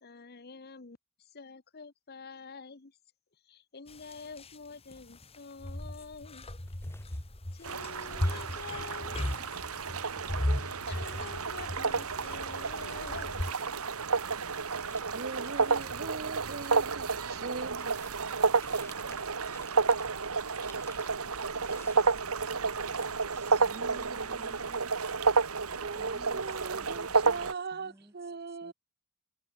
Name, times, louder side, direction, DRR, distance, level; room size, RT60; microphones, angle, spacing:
voice 1, 0.0-1.0 1.3-2.9 3.5-6.4 7.6-9.3 10.6-13.4, left 4 dB, 45° left, 1.0 m, -47 dB
sound 1, 3.9-4.6 4.9-13.5, left 1 dB, 25° left, 1.9 m, -36 dB
sound 2, 6.7-7.3 7.6-12.4 12.7-23.6, left 2 dB, 10° left, 3.7 m, -58 dB
sound 3, 7.6-27.5, right 4 dB, 80° right, 1.5 m, -31 dB
voice 2, 8.0-8.4 22.1-24.7 25.9-28.7, right 1 dB, 10° right, 1.9 m, -58 dB
voice 3, 15.1-18.0 23.7-24.9 25.8-28.7, right 4 dB, 45° right, 0.9 m, -41 dB
head